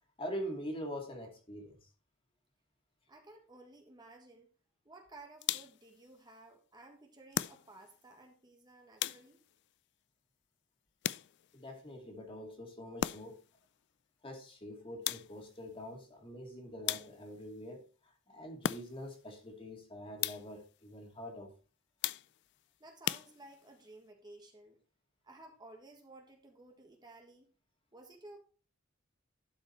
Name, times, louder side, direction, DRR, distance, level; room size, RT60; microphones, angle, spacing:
voice 1, 0.2-1.8 11.5-13.4 14.2-21.5, equal, 25° left, 2.4 m, -44 dB
voice 2, 3.1-4.5 4.8-9.4 22.8-24.8 25.2-27.5 27.9-28.4, right 2 dB, 20° right, 1.5 m, -55 dB
sound 1, 5.4-5.9 7.3-8.0 9.0-9.6 11.0-11.6 13.0-13.5 15.0-15.6 16.9-17.4 18.6-19.2 20.2-20.7 22.0-22.5 23.0-23.8, left 11 dB, 55° left, 0.4 m, -38 dB
12.0 x 5.4 x 4.4 m
head